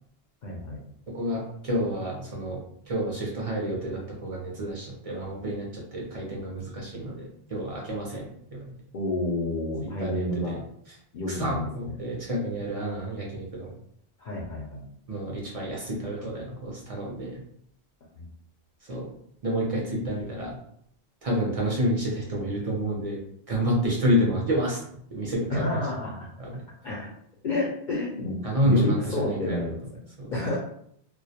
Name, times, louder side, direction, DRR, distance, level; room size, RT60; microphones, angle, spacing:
voice 1, 0.4-0.8 8.9-10.6 11.1-12.0 14.2-14.8 18.2-18.3 25.5-26.3 26.8-27.1 27.4-29.8 30.3-30.6, left 2 dB, 60° left, -4 dB, 0.5 m, -29 dB
voice 2, 1.1-2.6 2.9-8.7 9.8-10.6 11.3-13.7 15.1-17.4 18.8-19.1 19.4-20.6 21.2-23.2 23.5-24.8 25.1-25.8 26.4-26.6 28.4-29.6 30.2-30.3, equal, 45° right, -3 dB, 0.5 m, -29 dB
2.2 x 2.0 x 2.7 m, 0.68 s
omnidirectional pair, 1.1 m